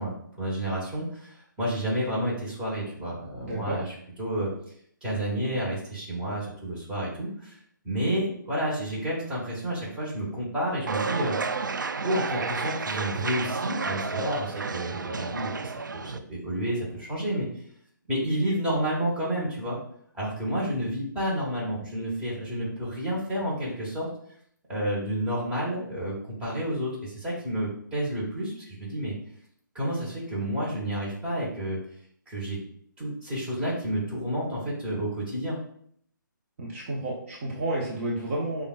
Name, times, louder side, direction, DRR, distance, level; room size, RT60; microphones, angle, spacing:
voice 1, 0.0-4.5 5.0-7.6 7.8-11.4 12.0-17.6 18.1-19.8 20.1-24.1 24.7-29.2 29.7-31.8 32.3-32.6 33.0-35.6, right 1 dB, 10° right, -7 dB, 1.5 m, -30 dB
voice 2, 3.4-3.8 36.6-38.6, right 1 dB, 40° right, -4 dB, 1.0 m, -31 dB
sound 1, 10.9-16.2, right 4 dB, 65° right, 0.4 m, -31 dB
5.4 x 3.6 x 2.5 m, 0.64 s
figure-of-eight pair, 140°, 11 cm